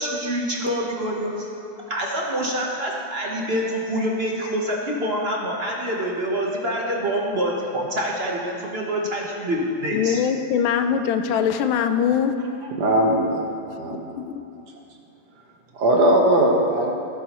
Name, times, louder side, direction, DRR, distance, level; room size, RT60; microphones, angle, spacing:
voice 1, 0.0-1.5 1.9-10.2, equal, 40° right, -2 dB, 1.1 m, -26 dB
voice 2, 9.9-12.3 14.2-14.4, left 8 dB, 85° left, 8 dB, 1.4 m, -22 dB
voice 3, 12.7-13.4 13.8-14.1 15.7-16.9, right 1 dB, 60° right, 0 dB, 1.6 m, -19 dB
16.0 x 9.6 x 3.0 m, 2.7 s
omnidirectional pair, 2.1 m